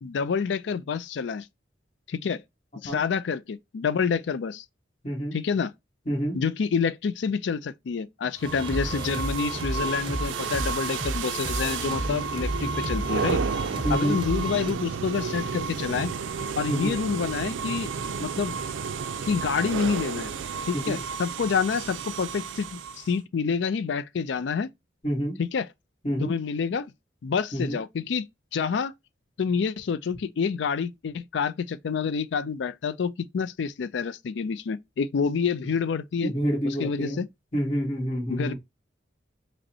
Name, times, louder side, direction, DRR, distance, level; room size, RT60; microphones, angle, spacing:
voice 1, 0.0-1.5 2.1-2.4 2.8-4.6 5.3-5.7 6.3-13.4 13.9-16.1 16.6-17.9 18.2-18.5 19.2-20.3 20.7-24.7 25.4-25.7 26.2-26.9 27.2-28.2 28.5-28.9 29.4-36.3 36.6-37.3 38.3-38.5, left 5 dB, 70° left, 0.4 m, -28 dB
voice 2, 5.0-5.4 6.1-6.4 13.8-14.2 16.7-17.0 20.7-21.0 25.0-25.4 26.0-26.3 27.5-27.8 36.2-37.2 37.5-38.5, equal, 40° left, 1.6 m, -28 dB
sound 1, 8.4-14.7, right 1 dB, 25° right, 0.6 m, -33 dB
sound 2, 8.4-23.2, right 5 dB, 90° right, 0.4 m, -32 dB
5.2 x 2.1 x 2.7 m
head